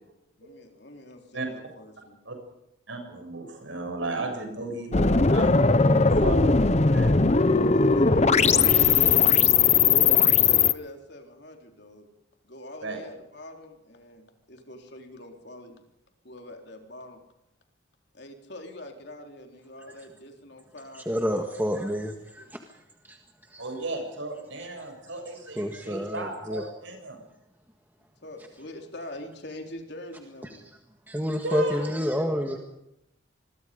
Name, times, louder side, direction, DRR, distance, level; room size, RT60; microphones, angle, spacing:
voice 1, 0.4-2.2 7.7-9.5 9.9-12.1 12.4-15.8 16.2-17.2 18.1-21.8 22.4-22.5 28.2-30.6, left 1 dB, 55° left, 3 dB, 3.8 m, -44 dB
voice 2, 2.9-7.2 12.8-13.0 23.6-27.2 31.4-32.3, right 2 dB, 65° right, 4 dB, 7.4 m, -35 dB
sound 1, 4.9-10.7, left 5 dB, 35° left, 0.7 m, -19 dB
voice 3, 20.9-22.4 23.0-23.2 23.5-23.6 25.6-26.6 31.1-32.6, equal, 10° right, 3 dB, 1.6 m, -28 dB
26.5 x 22.0 x 5.2 m, 0.82 s
head